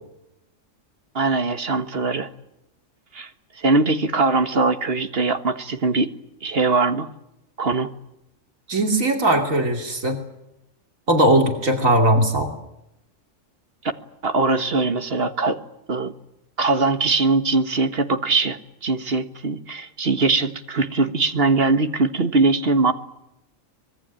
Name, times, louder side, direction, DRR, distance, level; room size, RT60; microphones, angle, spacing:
voice 1, 1.1-2.3 3.1-3.3 3.6-6.1 6.4-7.1 7.6-7.9 14.2-15.6 15.9-16.1 16.6-22.9, right 3 dB, 50° right, 9 dB, 1.7 m, -21 dB
voice 2, 8.7-10.2 11.1-12.5, right 1 dB, 90° right, 4 dB, 3.2 m, -19 dB
25.0 x 21.0 x 9.0 m, 0.86 s
omnidirectional pair, 1.3 m